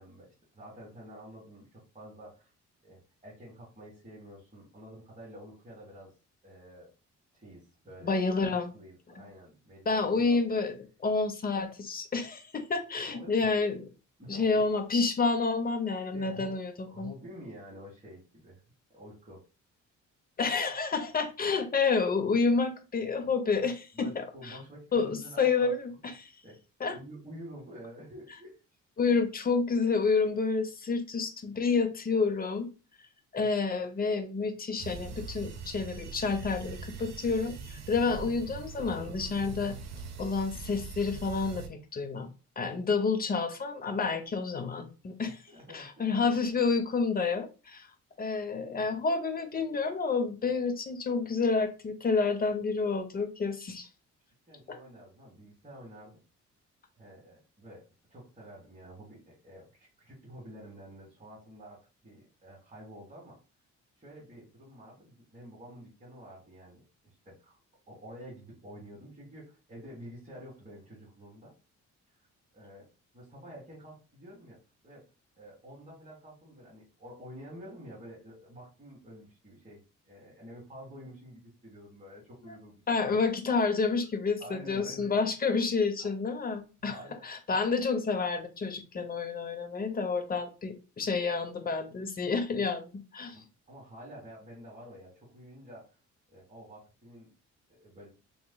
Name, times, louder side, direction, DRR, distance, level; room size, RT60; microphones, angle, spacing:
voice 1, 0.0-2.5 2.8-6.1 6.4-6.9 7.3-10.4 12.9-13.6 14.2-14.7 16.1-18.6 18.9-19.4 23.9-26.0 26.4-26.6 26.9-28.6 45.2-46.5 54.5-56.2 57.0-63.4 64.0-67.6 67.9-71.5 72.2-72.3 72.5-74.6 74.8-75.1 75.3-83.0 84.4-85.3 86.0-86.1 86.8-87.6 93.3-96.0 96.3-97.3 97.7-98.1, equal, 25° right, -6 dB, 1.5 m, -49 dB
voice 2, 8.0-8.7 9.2-9.3 9.9-13.8 14.3-17.1 20.4-24.6 24.9-26.3 26.8-26.9 29.0-32.7 33.3-39.8 40.2-42.3 42.6-45.4 45.7-47.9 48.2-53.9 54.7-54.8 82.9-87.0 87.2-93.4, left 4 dB, 30° left, 8 dB, 0.7 m, -29 dB
sound 1, 34.8-41.7, right 6 dB, 60° right, 0.8 m, -42 dB
3.8 x 3.0 x 2.2 m, 0.32 s
cardioid pair, 90°, 30 cm